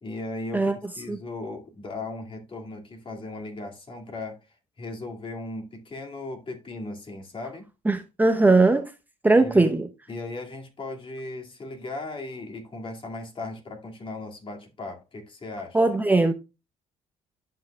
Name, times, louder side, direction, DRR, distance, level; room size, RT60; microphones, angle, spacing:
voice 1, 0.0-4.4 4.8-7.7 9.4-9.7 10.1-15.8, left 2 dB, 35° left, 2.2 m, -37 dB
voice 2, 7.8-8.9 9.2-9.9 15.7-16.3, right 2 dB, 10° right, 0.8 m, -19 dB
11.5 x 5.7 x 2.3 m
supercardioid pair, 70°, 14 cm